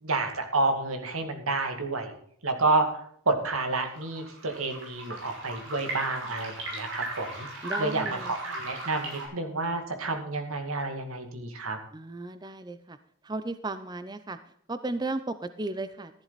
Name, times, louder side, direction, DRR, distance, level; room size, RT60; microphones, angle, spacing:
voice 1, 0.0-2.1 2.4-11.8, right 3 dB, 90° right, 5 dB, 2.3 m, -29 dB
sound 1, 3.6-9.3, right 1 dB, 65° right, 6.3 m, -37 dB
voice 2, 7.6-8.3 11.9-13.0 13.2-14.4 14.7-16.2, right 2 dB, 20° right, 11 dB, 0.5 m, -35 dB
14.0 x 11.5 x 4.1 m, 0.64 s
head